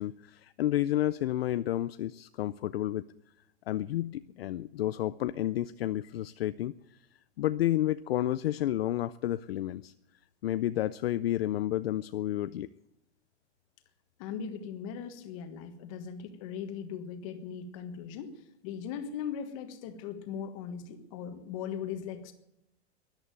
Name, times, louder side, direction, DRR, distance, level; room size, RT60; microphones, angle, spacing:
voice 1, 0.0-3.0 3.7-6.7 7.4-9.9 10.4-12.7, left 13 dB, 60° left, 14 dB, 0.5 m, -30 dB
voice 2, 14.2-18.3 18.6-22.3, left 7 dB, 30° left, 8 dB, 1.6 m, -39 dB
13.5 x 11.5 x 9.3 m, 0.85 s
supercardioid pair, 180°, 34 cm